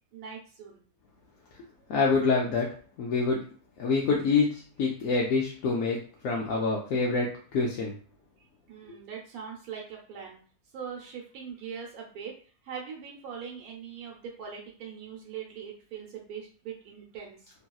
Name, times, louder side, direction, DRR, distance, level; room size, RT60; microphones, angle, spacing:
voice 1, 0.1-0.8 8.4-10.4 10.7-12.4 12.6-17.5, right 7 dB, 80° right, -1 dB, 1.1 m, -41 dB
voice 2, 1.9-2.7 3.0-3.4 3.8-6.0 6.2-7.9, left 4 dB, 70° left, -2 dB, 0.9 m, -26 dB
2.9 x 2.7 x 2.3 m, 0.41 s
omnidirectional pair, 1.6 m